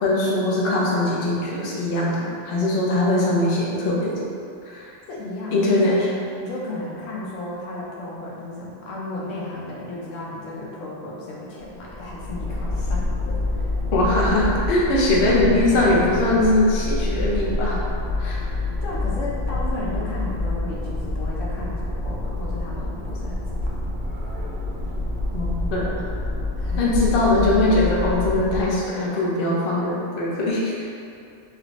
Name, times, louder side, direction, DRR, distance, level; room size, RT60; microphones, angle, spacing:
voice 1, 0.0-4.2 4.7-4.9 5.5-6.0 13.9-17.8 18.2-18.4 25.3-25.9 26.8-30.7, left 2 dB, 55° left, -5 dB, 0.7 m, -21 dB
voice 2, 5.1-6.0 6.4-13.7 18.8-23.8 26.6-26.9, left 2 dB, 90° left, -5 dB, 1.0 m, -34 dB
sound 1, 11.6-28.9, left 2 dB, 55° right, 0.6 m, -27 dB
3.4 x 3.1 x 2.5 m, 2.5 s
omnidirectional pair, 1.3 m